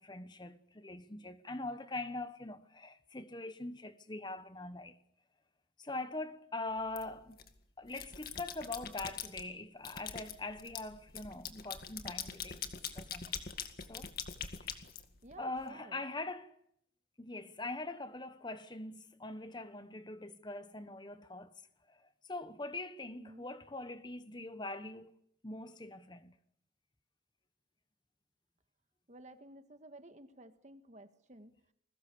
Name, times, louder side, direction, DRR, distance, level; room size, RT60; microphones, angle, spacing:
voice 1, 0.0-4.9 5.8-7.4 7.8-13.4 13.9-14.1 15.4-16.5 17.2-21.5 21.9-25.1 25.4-26.3, left 2 dB, 25° left, 1.1 m, -43 dB
sound 1, 6.9-7.5 7.9-9.4 9.8-15.6, left 7 dB, 50° left, 2.1 m, -43 dB
voice 2, 15.2-16.0 23.1-23.5 29.1-31.5, right 1 dB, 40° right, 1.7 m, -54 dB
29.5 x 21.0 x 6.9 m
head